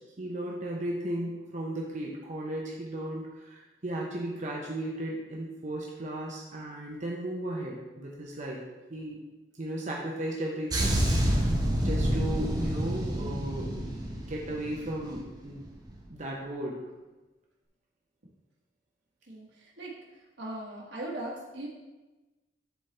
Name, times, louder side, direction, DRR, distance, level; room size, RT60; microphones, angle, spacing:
voice 1, 0.2-8.6 8.9-9.2 9.6-11.4 11.8-14.0 14.3-15.7 16.1-16.8, right 1 dB, 40° right, -2 dB, 0.9 m, -35 dB
sound 1, 10.7-15.3 15.5-15.8, equal, 20° right, 1.3 m, -28 dB
voice 2, 19.3-19.9 20.4-21.7, right 1 dB, 75° right, -3 dB, 1.7 m, -39 dB
11.5 x 4.2 x 3.3 m, 1.1 s
head